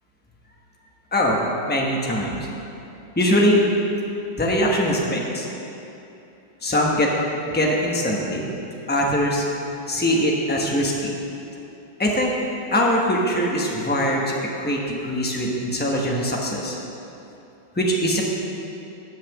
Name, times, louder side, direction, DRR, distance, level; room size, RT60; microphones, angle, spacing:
voice 1, 1.7-2.4 3.2-3.6 4.4-5.5 6.6-7.1 7.5-8.5 8.9-9.4 9.9-11.1 12.0-12.3 12.7-16.8 17.8-18.2, equal, 10° left, -2 dB, 0.6 m, -22 dB
9.7 x 5.8 x 7.3 m, 2.8 s
omnidirectional pair, 2.1 m